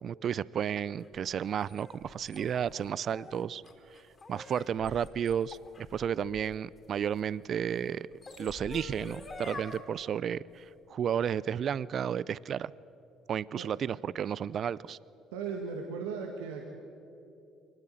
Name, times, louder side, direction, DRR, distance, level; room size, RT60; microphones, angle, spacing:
voice 1, 0.0-3.6 4.3-10.6 10.9-12.7 13.3-15.0, right 8 dB, 55° right, 21 dB, 0.4 m, -32 dB
sound 1, 1.0-7.2 8.0-9.8, left 3 dB, 30° left, 4.0 m, -46 dB
voice 2, 15.3-16.6, right 5 dB, 85° right, 2 dB, 1.8 m, -37 dB
23.0 x 18.0 x 9.0 m, 2.8 s
hypercardioid pair, 60°, 0 cm